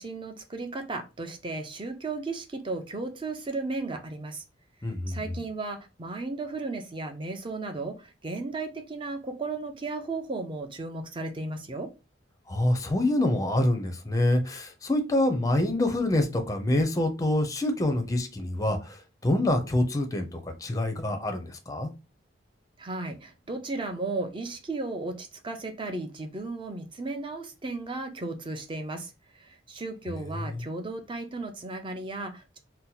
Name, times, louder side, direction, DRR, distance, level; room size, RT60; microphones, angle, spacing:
voice 1, 0.0-4.4 5.1-11.9 22.8-32.6, right 3 dB, 25° right, 0.5 m, -35 dB
voice 2, 4.8-5.2 12.5-21.9 30.3-30.6, left 1 dB, 20° left, 0.5 m, -26 dB
2.8 x 2.2 x 3.9 m
head